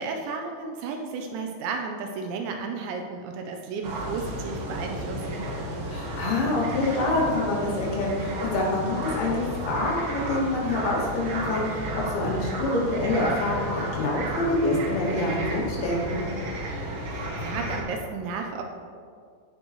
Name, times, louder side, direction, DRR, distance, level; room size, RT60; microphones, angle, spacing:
voice 1, 0.0-5.5 17.0-18.6, right 4 dB, 80° right, 3 dB, 2.7 m, -33 dB
sound 1, 3.8-17.8, right 1 dB, 60° right, 2.5 m, -32 dB
voice 2, 5.9-16.3, left 2 dB, 80° left, -5 dB, 4.6 m, -26 dB
16.5 x 5.9 x 3.1 m, 2.2 s
omnidirectional pair, 5.6 m